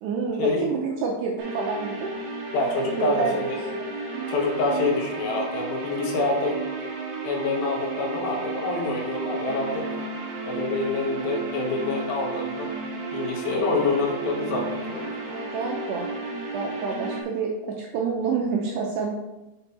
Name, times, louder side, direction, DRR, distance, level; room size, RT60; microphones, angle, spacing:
voice 1, 0.0-2.1 3.0-3.9 15.3-16.1 16.5-19.1, right 5 dB, 85° right, -1 dB, 2.4 m, -28 dB
sound 1, 1.4-17.2, right 3 dB, 60° right, 3.2 m, -33 dB
voice 2, 2.5-3.6 4.3-6.6 7.2-9.9 10.4-12.7 13.1-15.0, left 3 dB, 70° left, 0 dB, 2.5 m, -26 dB
7.0 x 5.3 x 4.3 m, 1.0 s
omnidirectional pair, 5.5 m